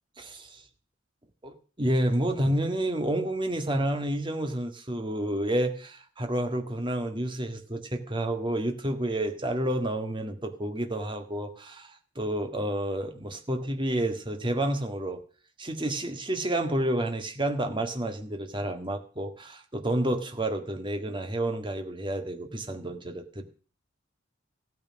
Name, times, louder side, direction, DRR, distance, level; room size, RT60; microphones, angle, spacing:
voice 1, 0.2-0.6 1.4-15.2 15.6-23.4, right 1 dB, 25° right, 5 dB, 1.7 m, -30 dB
15.5 x 9.5 x 6.4 m, 0.40 s
head